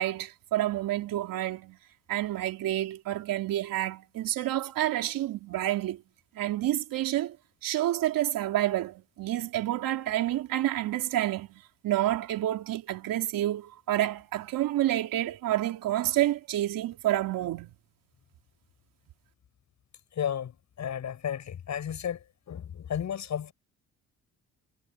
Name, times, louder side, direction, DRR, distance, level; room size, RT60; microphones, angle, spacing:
voice 1, 0.0-1.8 2.1-6.0 6.3-7.4 7.6-17.7, right 14 dB, 70° right, 3.3 m, -29 dB
voice 2, 20.2-20.5 20.8-22.2 22.5-23.5, left 9 dB, 55° left, 7.7 m, -33 dB
cardioid pair, 95°, 34 cm